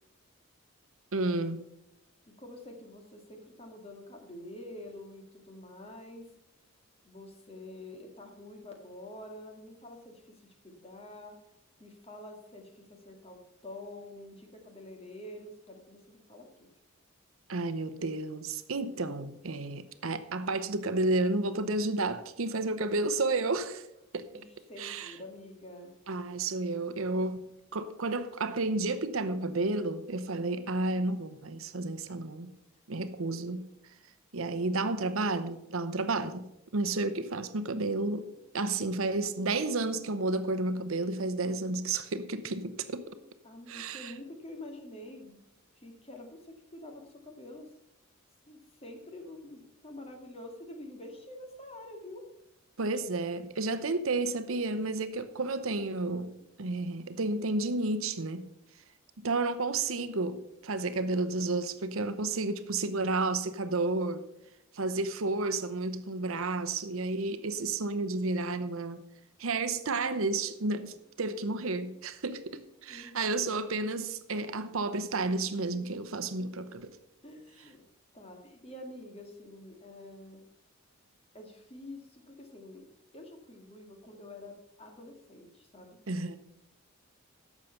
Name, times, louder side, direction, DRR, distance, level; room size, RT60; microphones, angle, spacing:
voice 1, 1.1-1.6 17.5-23.9 24.1-24.3 24.8-25.1 26.1-27.4 27.7-32.5 32.9-33.7 34.3-38.3 38.5-43.1 43.7-44.1 52.8-56.3 56.6-58.5 59.2-64.2 64.7-69.0 69.4-77.0 86.1-86.4, right 3 dB, 70° right, 0.8 m, -31 dB
voice 2, 2.3-6.3 7.0-11.4 11.8-16.7 24.3-25.9 43.4-45.4 45.8-47.7 48.5-52.3 72.9-73.6 77.2-77.8 78.1-80.4 81.3-82.9 83.1-86.0, left 1 dB, 30° left, 1.9 m, -47 dB
11.5 x 7.4 x 5.7 m
head